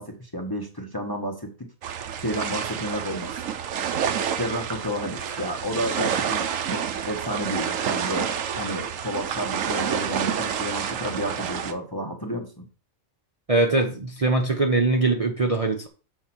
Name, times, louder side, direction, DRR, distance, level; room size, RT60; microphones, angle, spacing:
voice 1, 0.0-1.7 2.2-3.4 4.4-12.7, equal, 20° left, 2 dB, 1.0 m, -31 dB
sound 1, 1.8-11.7, right 8 dB, 70° right, 1.1 m, -29 dB
voice 2, 13.5-15.9, right 2 dB, 30° right, 2 dB, 0.9 m, -22 dB
7.0 x 4.2 x 6.0 m, 0.35 s
omnidirectional pair, 1.4 m